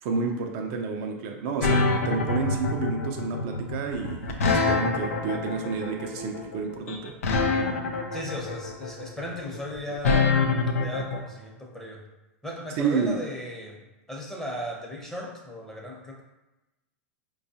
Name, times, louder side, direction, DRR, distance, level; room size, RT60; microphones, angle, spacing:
voice 1, 0.0-7.2 12.8-13.2, right 5 dB, 55° right, 2 dB, 0.5 m, -30 dB
sound 1, 1.6-11.2, left 4 dB, 85° left, 0.5 m, -25 dB
voice 2, 8.1-10.4 10.8-12.0 12.4-13.8 14.1-16.2, equal, 5° left, -2 dB, 0.8 m, -36 dB
4.6 x 2.3 x 2.7 m, 1.0 s
hypercardioid pair, 110°, 7 cm